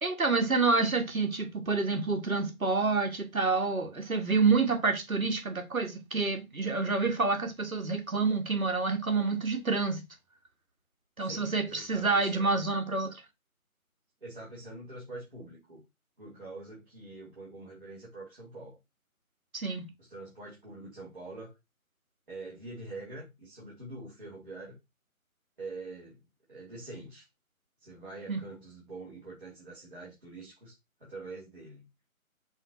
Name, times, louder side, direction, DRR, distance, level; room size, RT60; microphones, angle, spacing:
voice 1, 0.0-10.0 11.2-13.2 19.5-19.9 28.3-28.4, right 4 dB, 70° right, 1.5 m, -28 dB
voice 2, 11.2-12.6 14.2-15.8 16.2-18.8 20.0-21.5 22.3-24.8 25.6-26.2 26.5-27.3 27.8-30.7 31.0-31.9, right 2 dB, 35° right, 1.8 m, -45 dB
5.5 x 2.3 x 4.0 m
figure-of-eight pair, 165°, 43 cm